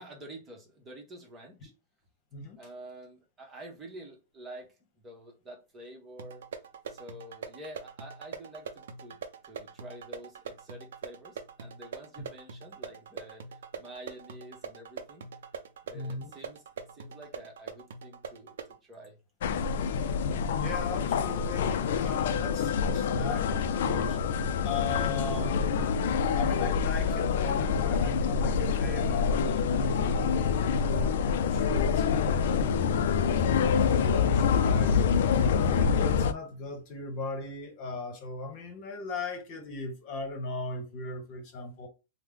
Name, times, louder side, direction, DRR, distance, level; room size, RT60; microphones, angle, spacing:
voice 1, 0.0-1.7 2.6-4.7 4.9-6.4 6.9-9.2 9.4-15.3 15.8-16.6 16.9-18.6 18.8-19.2, right 1 dB, 20° right, 1.0 m, -48 dB
sound 1, 6.2-18.8, right 6 dB, 80° right, 0.5 m, -43 dB
voice 2, 15.9-16.3 20.6-24.2 24.6-25.6 26.4-33.1 33.6-35.1 35.6-41.9, left 3 dB, 45° left, 1.1 m, -38 dB
sound 2, 19.4-36.3, left 6 dB, 70° left, 0.3 m, -26 dB
3.2 x 2.1 x 3.6 m
hypercardioid pair, 140°, 0 cm